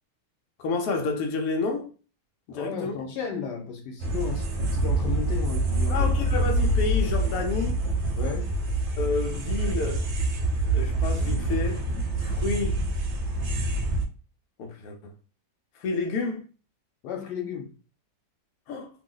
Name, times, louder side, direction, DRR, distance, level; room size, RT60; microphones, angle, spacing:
voice 1, 0.6-1.9 2.5-2.9 5.9-7.9 9.0-10.1 10.7-11.8 12.2-12.8 14.6-15.1 15.8-16.4 18.7-18.9, left 3 dB, 65° left, 1.0 m, -30 dB
voice 2, 2.5-6.1 8.1-8.5 17.0-17.7, left 6 dB, 85° left, 1.3 m, -34 dB
sound 1, 4.0-14.0, right 1 dB, 60° right, 0.9 m, -26 dB
3.0 x 2.0 x 3.7 m
omnidirectional pair, 1.8 m